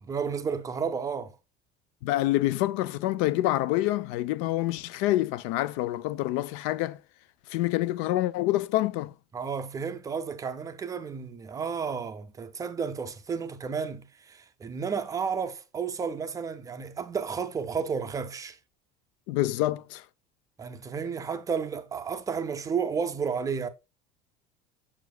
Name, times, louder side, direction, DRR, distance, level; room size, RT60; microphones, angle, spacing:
voice 1, 0.0-1.4 9.3-18.6 20.6-23.7, right 6 dB, 15° right, 0.5 m, -32 dB
voice 2, 2.0-7.0 7.5-9.1 19.3-20.1, left 16 dB, 70° left, 0.5 m, -27 dB
7.0 x 6.6 x 2.2 m
cardioid pair, 170°, 20 cm